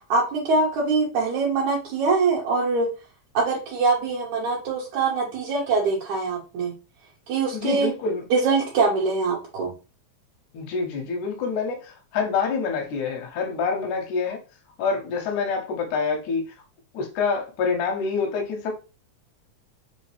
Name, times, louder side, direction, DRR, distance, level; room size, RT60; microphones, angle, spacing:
voice 1, 0.1-2.9 3.3-6.7 7.3-7.9 8.3-9.7, right 4 dB, 80° right, -5 dB, 2.4 m, -23 dB
voice 2, 7.5-8.2 10.5-14.4 14.8-16.4 16.9-18.7, left 5 dB, 90° left, 1 dB, 2.3 m, -26 dB
5.5 x 2.7 x 3.2 m, 0.32 s
omnidirectional pair, 3.4 m